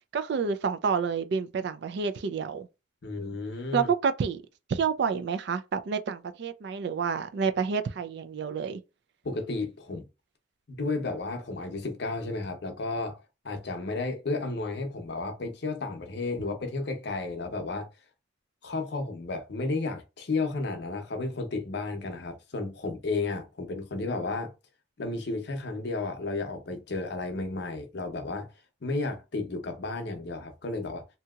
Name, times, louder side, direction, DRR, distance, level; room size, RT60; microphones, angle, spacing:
voice 1, 0.1-2.7 3.7-4.4 4.7-8.8, right 6 dB, 60° right, 0.3 m, -29 dB
voice 2, 3.0-3.9 9.2-10.1 10.7-17.9 18.6-24.5 25.0-28.5 28.8-31.0, left 3 dB, 60° left, 0.6 m, -33 dB
2.7 x 2.7 x 2.3 m
head